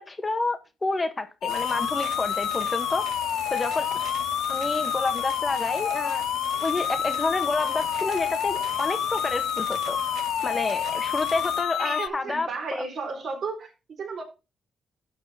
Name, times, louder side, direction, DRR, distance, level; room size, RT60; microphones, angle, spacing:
voice 1, 0.1-3.0 3.5-4.1 4.5-6.2 6.6-10.0 10.4-12.8, left 3 dB, 25° left, 1.4 m, -29 dB
sound 1, 1.4-12.1, left 11 dB, 85° left, 0.4 m, -28 dB
sound 2, 1.5-11.6, right 6 dB, 90° right, 2.0 m, -39 dB
voice 2, 11.8-14.2, right 4 dB, 50° right, 3.8 m, -33 dB
12.0 x 4.2 x 5.5 m
cardioid pair, 120°, 0 cm